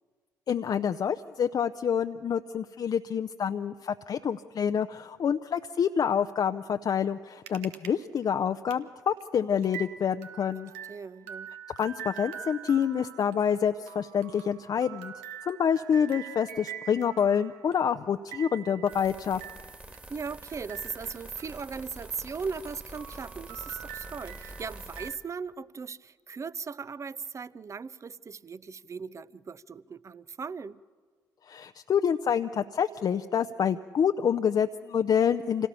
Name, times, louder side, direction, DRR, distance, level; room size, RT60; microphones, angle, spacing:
voice 1, 0.5-10.7 11.8-15.1 15.5-19.4 31.5-35.7, left 7 dB, 50° left, 0.6 m, -27 dB
sound 1, 7.5-7.9 8.2-8.3 8.7-8.8 9.2-9.3 9.6-22.3 22.6-25.2, right 10 dB, 85° right, 0.9 m, -45 dB
voice 2, 10.9-11.5 20.1-30.8, right 5 dB, 35° right, 0.7 m, -38 dB
sound 2, 18.9-25.1, right 1 dB, 20° right, 2.1 m, -46 dB
26.0 x 17.5 x 6.9 m
hypercardioid pair, 50°, 8 cm